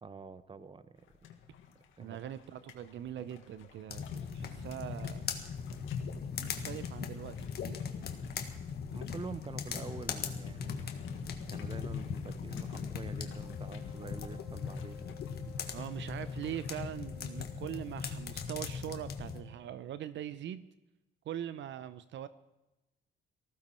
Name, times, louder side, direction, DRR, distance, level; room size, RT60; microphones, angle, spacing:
voice 1, 0.0-1.0 2.0-2.2 8.2-10.9 11.5-15.2, right 4 dB, 25° right, 14 dB, 0.9 m, -46 dB
sound 1, 1.1-16.8, left 8 dB, 80° left, 1.7 m, -48 dB
voice 2, 2.0-4.1 4.3-5.3 6.4-7.8 15.7-20.6 21.3-22.3, right 11 dB, 70° right, 14 dB, 0.6 m, -42 dB
sound 2, 3.9-19.4, left 6 dB, 55° left, 1.6 m, -40 dB
Wind instrument woodwind instrument, 13.2-19.8, left 9 dB, 5° right, 4.4 m, -56 dB
18.5 x 15.0 x 4.5 m, 1.0 s
cardioid pair, 90°, 20 cm